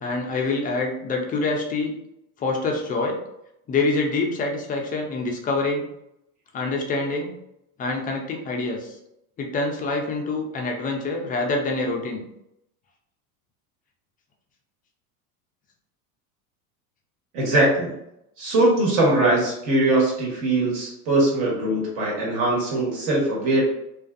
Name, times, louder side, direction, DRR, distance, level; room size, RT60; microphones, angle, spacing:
voice 1, 0.0-1.9 2.4-3.2 3.7-5.8 6.5-7.3 7.8-9.0 9.4-12.2, left 3 dB, 20° left, 1 dB, 0.3 m, -26 dB
voice 2, 17.3-17.9 18.4-23.6, right 2 dB, 55° right, -4 dB, 1.4 m, -21 dB
2.4 x 2.4 x 2.4 m, 0.80 s
hypercardioid pair, 100°, 45 cm